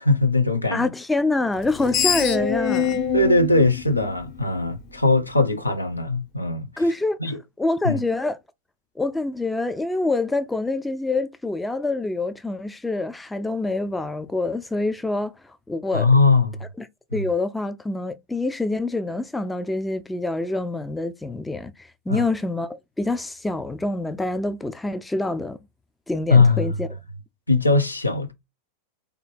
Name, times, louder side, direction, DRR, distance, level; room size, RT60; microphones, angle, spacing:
voice 1, 0.0-0.9 3.1-6.7 7.2-7.4 7.8-8.0 15.9-16.6 22.1-22.2 26.3-26.7 27.5-28.3, left 3 dB, 85° left, 0.6 m, -20 dB
voice 2, 0.7-3.0 6.8-7.2 7.6-8.4 9.0-16.1 16.8-16.9 17.1-25.6 26.1-26.9, left 2 dB, 5° left, 0.4 m, -26 dB
Screech, 1.6-4.8, left 8 dB, 35° left, 0.7 m, -25 dB
3.3 x 2.7 x 4.1 m
figure-of-eight pair, 90°, 0 cm